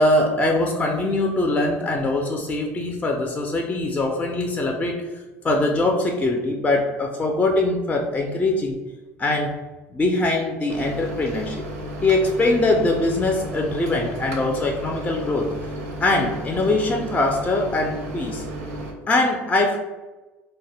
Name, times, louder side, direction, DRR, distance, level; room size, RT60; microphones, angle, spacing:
voice 1, 0.0-5.0 5.4-8.8 9.2-9.6 9.9-11.7 12.0-15.7 16.0-18.4 19.1-19.8, left 2 dB, 15° left, 1 dB, 0.3 m, -22 dB
Microwave oven, 10.7-18.9, right 1 dB, 90° right, 0.5 m, -33 dB
2.1 x 2.0 x 3.2 m, 1.2 s
hypercardioid pair, 80°, 8 cm